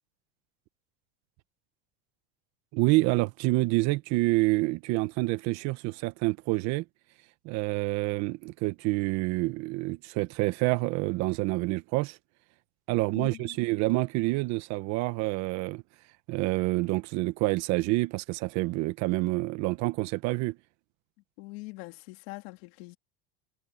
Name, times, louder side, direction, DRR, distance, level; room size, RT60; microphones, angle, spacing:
voice 1, 2.7-6.8 7.4-12.2 12.9-15.8 16.3-20.6, right 21 dB, 55° right, 1.4 m, -27 dB
voice 2, 13.1-13.6 21.4-23.0, left 24 dB, 65° left, 2.6 m, -42 dB
supercardioid pair, 130°, 33 cm